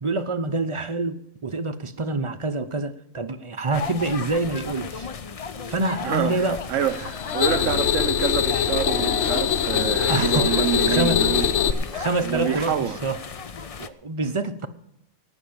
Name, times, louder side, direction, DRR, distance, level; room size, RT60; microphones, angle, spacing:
voice 1, 0.0-5.1 5.7-6.8 10.1-11.2 11.9-13.2 13.8-14.7, right 2 dB, 30° right, 0.6 m, -26 dB
sound 1, 3.7-13.9, left 6 dB, 45° left, 0.4 m, -34 dB
voice 2, 6.0-11.4 12.2-13.0, right 10 dB, 75° right, 1.1 m, -27 dB
sound 2, 6.9-11.7, left 8 dB, 65° left, 1.1 m, -23 dB
18.0 x 6.2 x 8.6 m
omnidirectional pair, 1.3 m